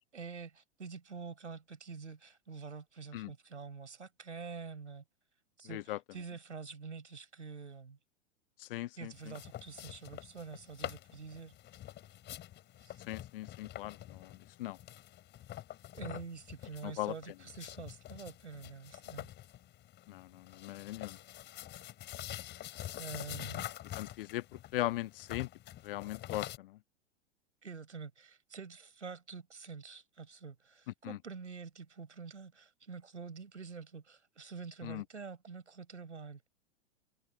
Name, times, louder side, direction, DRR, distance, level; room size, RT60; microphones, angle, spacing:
voice 1, 0.1-5.0 5.6-8.0 9.0-11.5 12.8-13.0 15.9-19.3 23.0-23.7 27.6-36.4, right 5 dB, 85° right, 4.8 m, -47 dB
voice 2, 5.6-6.0 8.6-9.3 13.1-14.8 16.8-17.1 20.1-21.2 23.9-25.5 25.8-26.8 31.0-31.2 34.8-35.0, left 16 dB, 55° left, 0.5 m, -39 dB
sound 1, 9.1-26.6, left 13 dB, 30° left, 4.2 m, -47 dB
figure-of-eight pair, 100°, 35 cm